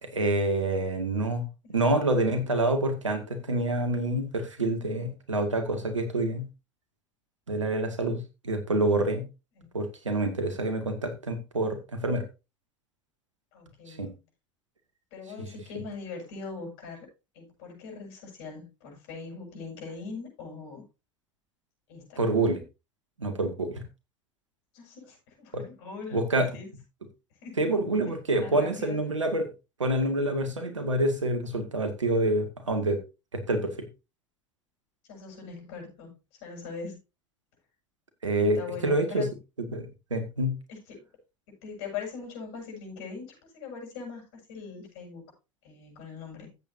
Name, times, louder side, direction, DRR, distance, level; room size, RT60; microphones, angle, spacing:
voice 1, 0.0-1.4 1.7-6.4 7.5-9.2 9.7-12.2 13.9-14.1 22.2-22.6 23.2-23.8 25.5-25.6 26.1-26.5 27.6-29.5 29.8-33.0 33.3-33.9 38.2-39.3 39.6-40.5, right 2 dB, 90° right, 8 dB, 2.2 m, -27 dB
voice 2, 13.5-14.1 15.1-17.1 17.3-20.8 21.9-22.2 24.7-26.7 27.4-27.6 28.4-29.0 35.1-36.1 36.4-37.0 38.4-39.3 40.7-41.1 41.6-45.3 45.6-46.5, left 5 dB, 65° left, 0 dB, 7.8 m, -41 dB
15.0 x 8.4 x 2.8 m, 0.27 s
hypercardioid pair, 75°, 15 cm